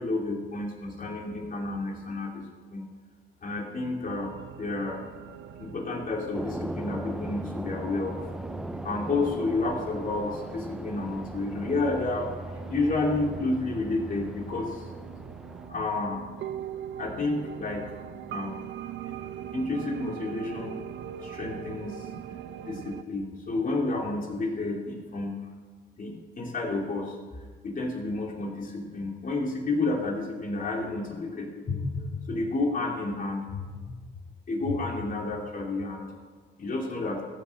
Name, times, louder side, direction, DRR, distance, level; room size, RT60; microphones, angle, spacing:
voice 1, 0.0-2.4 2.7-2.8 3.4-5.0 5.6-8.2 8.8-12.3 12.7-14.9 15.7-16.2 17.0-18.6 19.0-19.3 19.5-20.8 21.2-22.1 22.7-25.4 26.0-27.2 27.6-34.0 34.5-36.1 36.6-37.2, left 2 dB, 45° left, 0 dB, 2.7 m, -30 dB
sound 1, 4.0-23.0, right 10 dB, 70° right, 0.8 m, -42 dB
sound 2, 6.3-15.7, right 1 dB, 5° right, 0.4 m, -38 dB
14.0 x 6.3 x 7.6 m, 1.4 s
cardioid pair, 90°, 20 cm